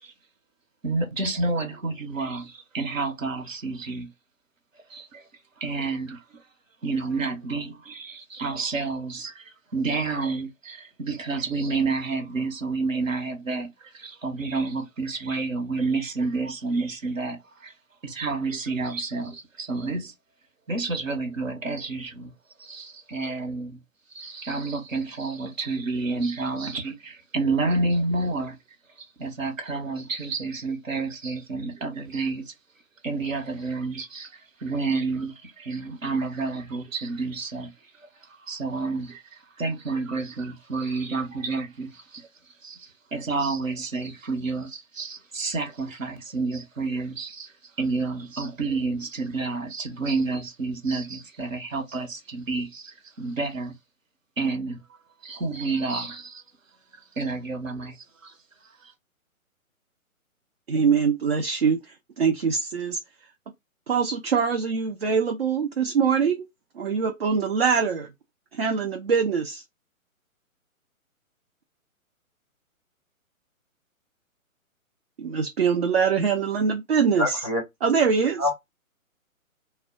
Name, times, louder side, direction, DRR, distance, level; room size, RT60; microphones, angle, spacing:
voice 1, 0.8-4.1 4.9-5.3 5.6-6.4 6.8-17.7 18.0-20.1 20.7-22.3 22.6-23.8 24.1-28.6 29.0-32.5 33.0-37.7 38.2-53.7 54.4-54.8 55.2-56.4 56.9-58.0 58.2-58.3 58.8-58.9, right 3 dB, 65° right, 1.0 m, -30 dB
voice 2, 60.7-63.0 63.9-66.5 66.7-68.1 68.5-69.6 75.2-77.4 77.8-78.5, right 6 dB, 45° right, 0.5 m, -23 dB
voice 3, 77.2-77.6 78.4-78.5, left 2 dB, 25° left, 0.4 m, -24 dB
2.3 x 2.1 x 3.5 m
figure-of-eight pair, 130°, 42 cm